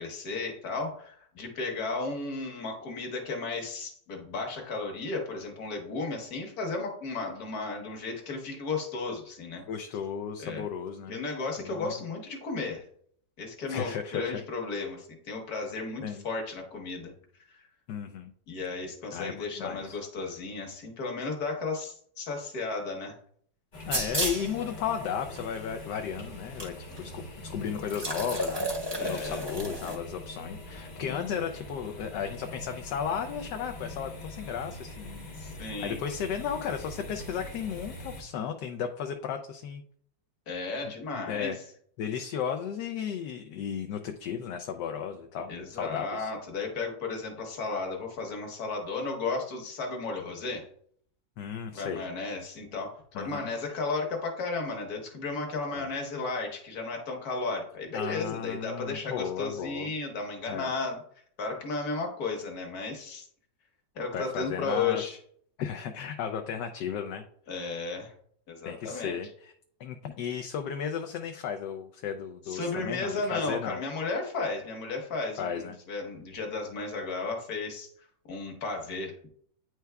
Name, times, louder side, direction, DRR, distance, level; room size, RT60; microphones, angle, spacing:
voice 1, 0.0-9.6 10.4-10.6 11.1-12.8 13.4-17.1 17.5-17.6 18.5-23.2 28.9-29.5 35.4-36.0 40.5-41.6 45.5-50.7 51.7-61.0 61.4-63.3 63.9-65.2 67.5-68.1 68.5-69.2 72.5-77.9 78.3-79.3, left 3 dB, 55° left, 1 dB, 1.6 m, -34 dB
voice 2, 9.7-11.2 11.6-11.9 13.7-14.4 16.0-16.2 17.9-18.3 19.1-20.0 23.9-28.7 29.0-35.3 35.6-39.8 41.3-41.6 42.0-46.3 51.4-52.0 53.1-53.5 55.8-55.9 57.9-59.9 60.5-60.7 64.1-65.1 65.6-67.2 67.6-67.7 68.6-69.5 69.8-73.8 75.4-75.8, left 7 dB, 75° left, 6 dB, 1.1 m, -34 dB
sound 1, 23.7-38.2, left 1 dB, 40° left, 0.7 m, -43 dB
sound 2, 23.9-24.5 25.4-25.5 26.6-26.7 27.0-27.1 27.8-30.0, right 1 dB, 20° right, 0.8 m, -32 dB
9.3 x 4.6 x 2.2 m, 0.62 s
omnidirectional pair, 2.0 m